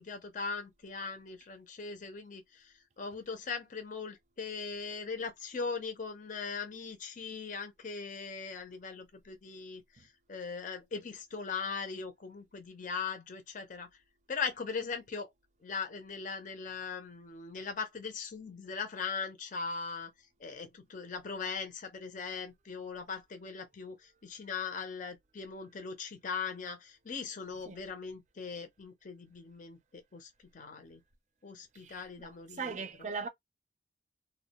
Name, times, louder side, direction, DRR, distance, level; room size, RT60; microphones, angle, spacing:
voice 1, 0.0-9.8 10.3-13.9 14.3-15.3 15.6-20.1 20.4-24.0 24.2-30.3 30.5-31.0 31.4-32.7, left 5 dB, 45° left, 0.6 m, -40 dB
voice 2, 31.8-33.3, right 5 dB, 40° right, 0.5 m, -40 dB
2.3 x 2.2 x 2.8 m
head